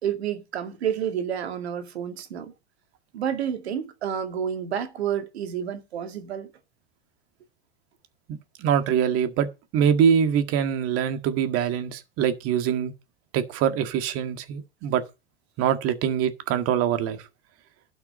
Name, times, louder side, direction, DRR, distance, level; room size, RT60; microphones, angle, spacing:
voice 1, 0.0-2.5 3.1-6.5, right 8 dB, 80° right, 2.2 m, -29 dB
voice 2, 8.3-9.5 9.7-12.9 13.3-15.0 15.6-17.2, right 8 dB, 45° right, 1.9 m, -24 dB
11.5 x 6.0 x 6.8 m
hypercardioid pair, 105°, 32 cm